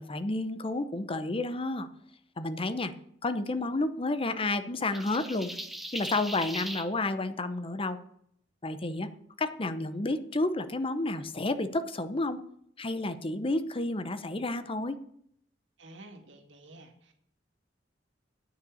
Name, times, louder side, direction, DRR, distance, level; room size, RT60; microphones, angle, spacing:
voice 1, 0.0-1.9 2.4-2.9 3.2-5.5 5.9-8.0 8.6-9.1 9.4-12.4 12.8-15.0, left 2 dB, 30° left, 11 dB, 0.8 m, -31 dB
sound 1, 4.9-6.9, equal, ahead, 0.9 m, -38 dB
voice 2, 15.8-17.1, right 2 dB, 80° right, 4 dB, 2.2 m, -50 dB
9.5 x 6.6 x 8.4 m, 0.68 s
head